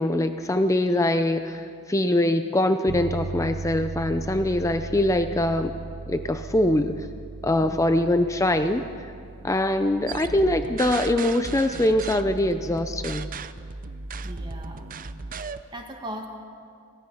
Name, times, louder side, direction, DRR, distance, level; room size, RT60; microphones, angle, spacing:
voice 1, 0.0-5.7 6.1-7.0 7.4-8.9 9.4-13.3, left 1 dB, 15° left, 8 dB, 0.6 m, -23 dB
sound 1, 2.9-13.0, right 3 dB, 75° right, 0.8 m, -38 dB
sound 2, 10.1-15.6, right 4 dB, 40° right, 0.6 m, -36 dB
voice 2, 14.2-14.9 15.4-16.3, right 1 dB, 20° right, 2 dB, 2.0 m, -39 dB
30.0 x 17.0 x 5.7 m, 2.3 s
head